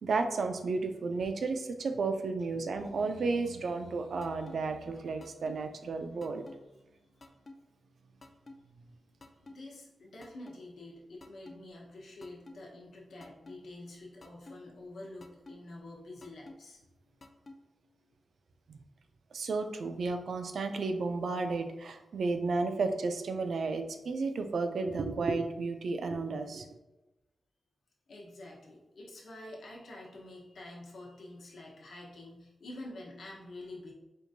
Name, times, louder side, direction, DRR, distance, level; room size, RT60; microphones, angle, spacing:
voice 1, 0.0-6.5 18.7-18.8 19.3-26.7, right 3 dB, 65° right, 7 dB, 0.3 m, -33 dB
sound 1, 4.2-4.6 5.2-5.6 6.2-6.6 7.2-7.6 8.2-8.6 9.2-9.6 10.2-10.6 11.2-11.6 12.2-12.6 13.2-13.6 14.2-14.6 15.2-15.6 16.2-16.6 17.2-17.6, left 2 dB, 35° left, 0.3 m, -49 dB
voice 2, 9.4-16.8 28.1-33.9, left 1 dB, 75° left, -3 dB, 0.9 m, -47 dB
4.4 x 2.5 x 2.6 m, 1.0 s
wide cardioid pair, 150°, 0 cm